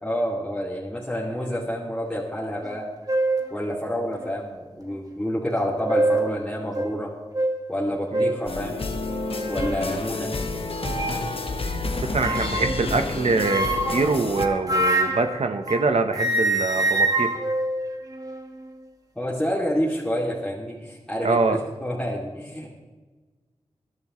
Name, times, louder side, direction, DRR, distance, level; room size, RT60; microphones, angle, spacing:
voice 1, 0.0-2.8 3.5-7.1 7.7-8.8 9.5-10.3 19.2-22.7, equal, 10° left, -5 dB, 2.5 m, -28 dB
sound 1, 2.6-2.8 3.1-3.5 4.2-4.3 5.6-6.3 6.7-6.9 7.3-7.5 8.1-8.4 9.1-9.8 10.8-11.3 12.2-12.8 13.4-15.9 16.1-18.5, right 2 dB, 30° right, 1.7 m, -25 dB
sound 2, 8.5-14.5, left 3 dB, 55° left, 1.3 m, -30 dB
voice 2, 12.1-17.3 21.2-21.6, right 3 dB, 65° right, 7 dB, 1.0 m, -24 dB
22.0 x 11.0 x 3.2 m, 1.3 s
wide cardioid pair, 70°, 12 cm